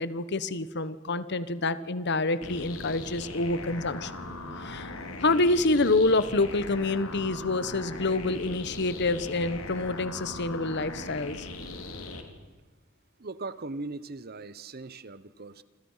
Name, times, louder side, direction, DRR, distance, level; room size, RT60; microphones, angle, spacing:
voice 1, 0.0-4.1 4.6-4.9 5.2-11.5, left 2 dB, 55° left, 14 dB, 1.3 m, -27 dB
sound 1, 2.4-12.2, left 2 dB, 90° left, 3.4 m, -39 dB
voice 2, 13.2-15.6, right 3 dB, 50° right, 16 dB, 1.0 m, -39 dB
27.0 x 26.5 x 5.7 m, 1.2 s
head